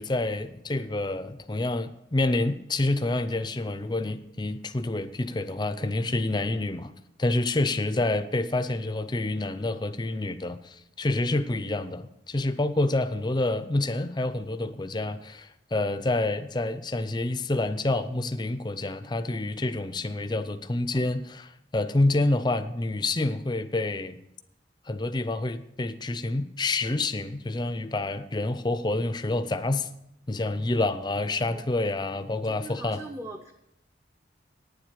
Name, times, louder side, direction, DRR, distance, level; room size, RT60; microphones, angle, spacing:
voice 1, 0.0-6.9 7.2-24.2 24.9-29.9 30.3-33.0, left 2 dB, 25° left, 0.5 m, -28 dB
voice 2, 32.1-33.5, right 2 dB, 15° right, 0.6 m, -42 dB
9.4 x 7.6 x 8.1 m
head